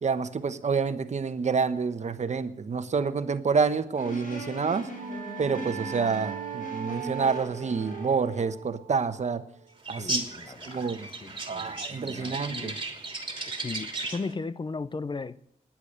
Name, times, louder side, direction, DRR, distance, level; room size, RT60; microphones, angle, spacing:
voice 1, 0.0-4.9 5.4-9.4 9.9-10.2 10.7-11.1 11.5-12.8, right 5 dB, 55° right, 1.1 m, -28 dB
sound 1, 3.9-8.5, equal, 70° left, 7.4 m, -40 dB
sound 2, 4.4-9.7, right 9 dB, 85° right, 1.0 m, -40 dB
sound 3, 9.8-14.3, right 2 dB, 35° right, 2.8 m, -35 dB
voice 2, 10.0-12.8 13.5-15.4, left 4 dB, 35° left, 0.6 m, -37 dB
17.5 x 10.5 x 6.7 m
cardioid pair, 80°, 14 cm